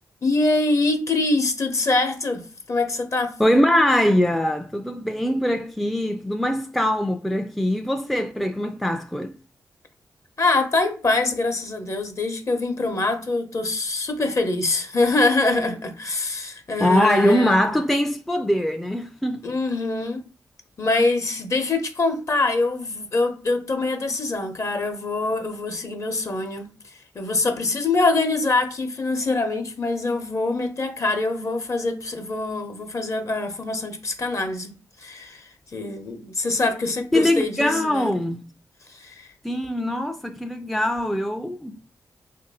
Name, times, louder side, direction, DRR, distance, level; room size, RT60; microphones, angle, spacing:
voice 1, 0.2-3.3 10.4-17.6 19.4-20.2 20.8-26.7 27.1-38.1 38.9-39.3, left 3 dB, 45° left, 0.7 m, -24 dB
voice 2, 3.4-9.4 16.8-19.4 37.1-38.5 39.4-41.8, left 1 dB, ahead, 0.3 m, -22 dB
3.0 x 2.6 x 4.0 m
cardioid pair, 65°, 7 cm